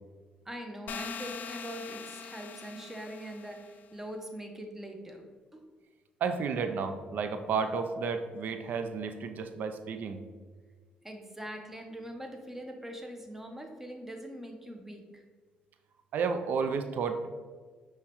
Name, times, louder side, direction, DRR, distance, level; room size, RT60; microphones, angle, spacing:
voice 1, 0.5-5.3 5.5-5.7 11.0-15.2, right 1 dB, 10° right, 3 dB, 0.8 m, -42 dB
sound 1, 0.9-3.8, left 6 dB, 60° left, 0.4 m, -42 dB
voice 2, 6.2-10.2 16.1-17.3, right 5 dB, 65° right, 7 dB, 0.4 m, -32 dB
5.5 x 3.0 x 3.1 m, 1.5 s
supercardioid pair, 70°, 3 cm